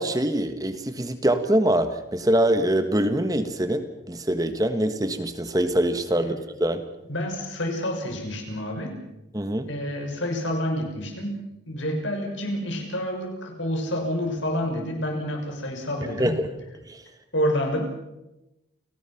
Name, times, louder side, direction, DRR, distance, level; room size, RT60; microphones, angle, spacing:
voice 1, 0.0-6.8 9.3-9.7 16.2-16.5 16.9-17.0, right 1 dB, 20° right, 9 dB, 1.4 m, -24 dB
voice 2, 7.1-9.0 9.7-16.4 17.3-17.8, equal, 85° left, 3 dB, 6.3 m, -28 dB
30.0 x 18.0 x 5.9 m, 0.92 s
head